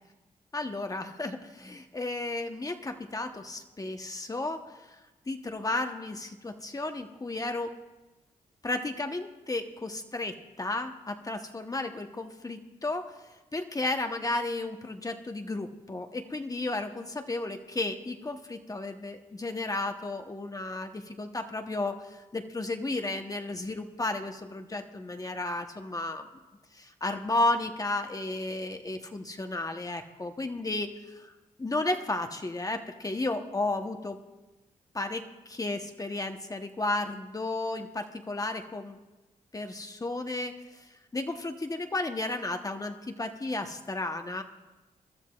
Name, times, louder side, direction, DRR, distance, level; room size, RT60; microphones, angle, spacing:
voice 1, 0.5-4.8 5.3-7.7 8.6-13.1 13.5-26.3 26.7-31.3 31.6-34.2 34.9-39.0 39.5-40.5 41.1-44.4, left 2 dB, 25° left, 5 dB, 0.9 m, -33 dB
23.5 x 12.5 x 2.4 m, 1.1 s
cardioid pair, 70°, 14 cm